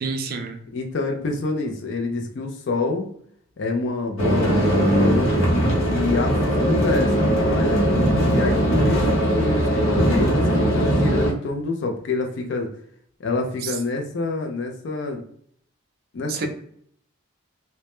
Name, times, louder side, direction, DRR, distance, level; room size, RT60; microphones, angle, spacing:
voice 1, 0.0-0.6 13.6-13.8 16.3-16.5, right 4 dB, 45° right, 5 dB, 0.3 m, -28 dB
voice 2, 0.7-3.1 3.6-5.6 5.9-7.8 8.3-12.7 13.2-15.2 16.1-16.5, left 3 dB, 55° left, 2 dB, 0.4 m, -27 dB
sound 1, 4.2-11.3, right 1 dB, 75° left, 0.8 m, -20 dB
2.1 x 2.1 x 2.9 m, 0.63 s
head